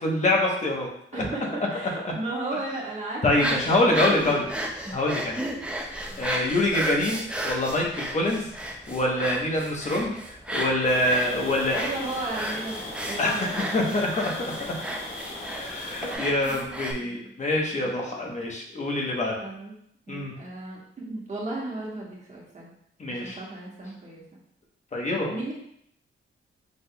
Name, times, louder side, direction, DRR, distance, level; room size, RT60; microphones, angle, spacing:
voice 1, 0.0-1.2 3.2-4.4 4.9-5.4 6.2-8.5 8.9-10.1 10.5-11.8 13.2-13.5 13.7-14.5 15.6-19.4 20.1-20.3 23.0-23.4 24.9-25.3, left 1 dB, 35° left, -1 dB, 0.9 m, -25 dB
voice 2, 1.1-4.6 6.1-6.3 11.7-13.7 15.3-15.4 15.9-17.3 17.7-18.0 19.4-19.7 20.1-22.7 23.1-24.4 25.3-25.5, right 2 dB, 35° right, -5 dB, 1.3 m, -35 dB
sound 1, 3.3-16.9, right 1 dB, 5° right, 0.4 m, -34 dB
sound 2, 10.8-16.2, left 2 dB, 75° left, 1.2 m, -37 dB
6.1 x 3.5 x 2.2 m, 0.69 s
wide cardioid pair, 175°, 21 cm